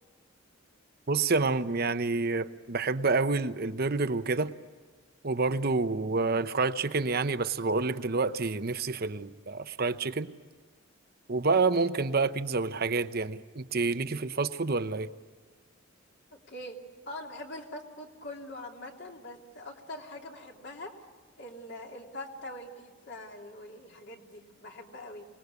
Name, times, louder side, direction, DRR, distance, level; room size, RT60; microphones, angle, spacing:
voice 1, 1.1-4.5 5.2-10.3 11.3-15.1, right 3 dB, 45° right, 11 dB, 0.9 m, -28 dB
voice 2, 17.1-20.9 21.4-25.3, left 1 dB, 55° left, 1 dB, 3.0 m, -43 dB
26.0 x 20.0 x 8.3 m, 1.5 s
head